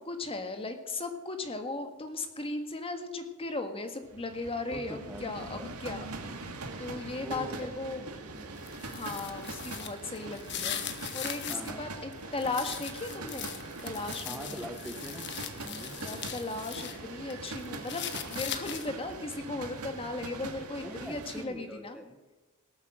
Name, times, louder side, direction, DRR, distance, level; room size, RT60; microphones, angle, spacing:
voice 1, 0.0-6.1 6.8-8.0 8.9-10.8 11.1-13.5 13.8-14.6 16.0-22.0, left 2 dB, 25° left, 6 dB, 1.7 m, -37 dB
sound 1, 4.0-21.4, right 2 dB, 90° right, 2.2 m, -42 dB
voice 2, 4.7-5.7 7.2-8.6 11.5-11.8 14.2-15.3 15.6-16.0 20.8-22.2, equal, ahead, 4 dB, 1.0 m, -43 dB
Grinding Styrofoam, 8.6-11.7 12.1-17.0 17.3-19.1, left 9 dB, 55° left, 1.4 m, -40 dB
18.5 x 8.1 x 7.6 m, 1.2 s
head